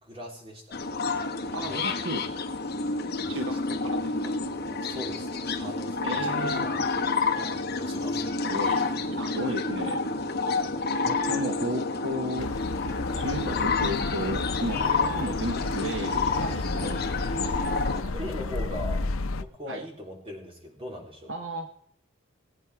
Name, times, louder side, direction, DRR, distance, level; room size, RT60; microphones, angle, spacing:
voice 1, 0.0-0.8 1.6-1.8 3.2-3.6 4.8-8.2 17.9-19.0 19.4-21.3, left 1 dB, 25° right, 0 dB, 3.4 m, -40 dB
sound 1, 0.7-18.0, left 3 dB, 50° left, 1.3 m, -29 dB
voice 2, 1.5-2.2 3.3-4.3 6.0-6.6 8.4-10.0 11.0-12.5 13.1-17.3 19.7-19.8 21.3-21.7, right 1 dB, 60° right, 6 dB, 1.1 m, -34 dB
sound 2, 12.4-19.4, left 3 dB, 80° left, 0.7 m, -32 dB
18.5 x 8.8 x 4.8 m, 0.67 s
head